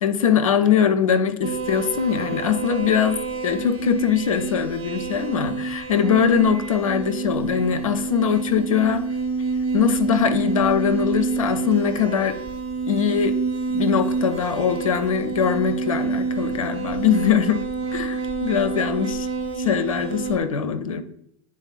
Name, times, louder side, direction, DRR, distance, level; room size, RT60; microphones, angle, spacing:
voice 1, 0.0-9.1 9.7-12.4 12.9-13.4 13.7-17.6 17.9-19.3 19.6-21.0, left 8 dB, 70° left, 10 dB, 0.7 m, -22 dB
sound 1, 1.4-20.4, right 4 dB, 40° right, 1.4 m, -28 dB
9.6 x 4.1 x 2.5 m, 0.76 s
figure-of-eight pair, 85°, 18 cm